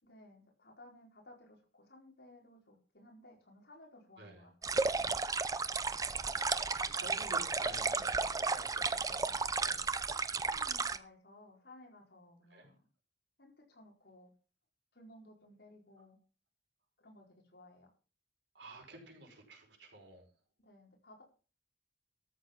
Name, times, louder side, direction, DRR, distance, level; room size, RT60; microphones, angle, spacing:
voice 1, 0.0-5.2 9.3-9.4 10.1-12.8 13.4-14.3 14.9-16.2 17.0-17.9 20.6-21.2, left 1 dB, 60° left, 0 dB, 4.7 m, -58 dB
sound 1, 4.6-11.0, right 4 dB, 20° right, 0.6 m, -33 dB
voice 2, 6.1-9.8 12.5-12.7 18.6-20.2, right 1 dB, 80° right, 2 dB, 5.2 m, -52 dB
13.5 x 8.0 x 5.9 m, 0.37 s
head